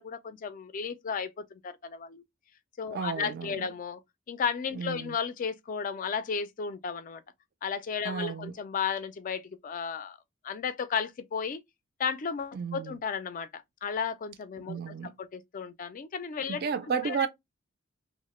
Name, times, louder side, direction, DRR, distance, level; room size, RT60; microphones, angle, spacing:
voice 1, 0.0-2.2 2.8-4.0 4.3-7.2 7.6-10.2 10.4-11.6 12.0-16.6 17.0-17.3, left 6 dB, 40° left, 0.3 m, -34 dB
voice 2, 2.9-3.7 4.7-5.2 8.0-8.5 12.5-13.0 14.7-15.1 16.5-17.3, right 6 dB, 50° right, 0.4 m, -33 dB
2.8 x 2.0 x 3.0 m
head